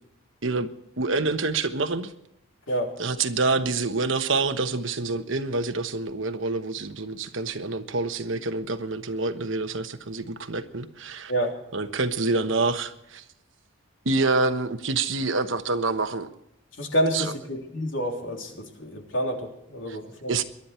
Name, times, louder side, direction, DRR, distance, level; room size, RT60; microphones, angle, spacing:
voice 1, 1.0-2.1 3.0-11.3 11.7-13.2 14.0-16.3 17.1-17.3 19.9-20.0 20.3-20.4, right 3 dB, 65° right, 9 dB, 1.2 m, -27 dB
voice 2, 16.8-20.3, equal, 65° left, 2 dB, 3.3 m, -28 dB
23.0 x 12.0 x 4.4 m, 0.82 s
head